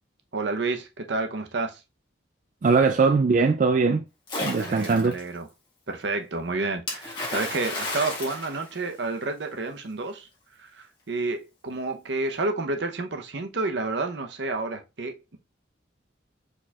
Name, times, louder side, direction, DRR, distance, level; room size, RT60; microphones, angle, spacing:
voice 1, 0.3-1.8 4.6-5.5 5.9-10.3 10.6-15.4, right 3 dB, 70° right, 0.8 m, -30 dB
voice 2, 2.6-4.0 4.4-5.2, right 4 dB, 45° right, 0.3 m, -21 dB
Splash splatter, 4.3-5.2 6.9-9.3, left 2 dB, 25° left, 1.6 m, -33 dB
4.7 x 4.2 x 2.4 m
head